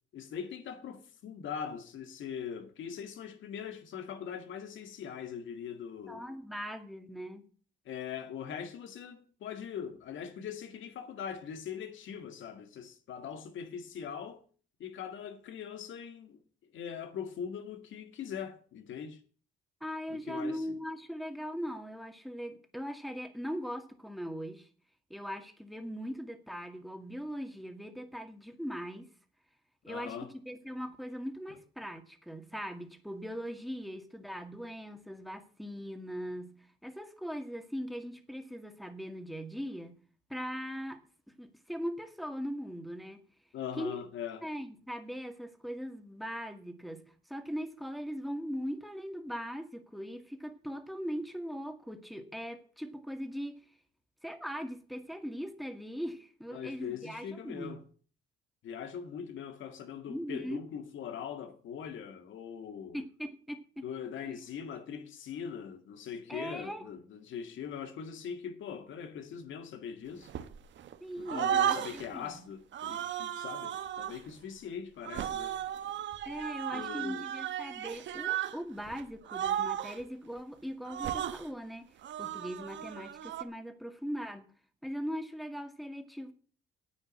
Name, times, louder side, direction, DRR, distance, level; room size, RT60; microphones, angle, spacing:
voice 1, 0.1-6.2 7.9-14.4 14.8-16.4 16.7-19.2 20.1-20.8 29.9-30.3 43.5-44.5 56.5-57.8 58.6-63.0 63.8-70.3 71.2-75.6 76.7-77.3, left 8 dB, 75° left, 2.0 m, -41 dB
voice 2, 6.1-7.4 19.8-24.7 25.1-29.1 29.8-36.5 36.8-40.0 40.3-41.0 41.3-43.2 43.8-44.0 44.4-47.0 47.3-53.6 54.2-57.8 60.1-60.6 62.9-63.9 64.3-64.4 66.3-66.9 71.0-72.4 76.3-81.9 82.2-84.5 84.8-86.3, equal, ahead, 2.1 m, -40 dB
sound 1, 70.3-71.0 71.3-72.1 72.7-74.2 75.0-78.6 78.8-79.0 79.3-80.0 80.9-81.5 82.0-83.4, right 10 dB, 70° right, 1.1 m, -34 dB
9.8 x 9.0 x 7.5 m
cardioid pair, 90°, 20 cm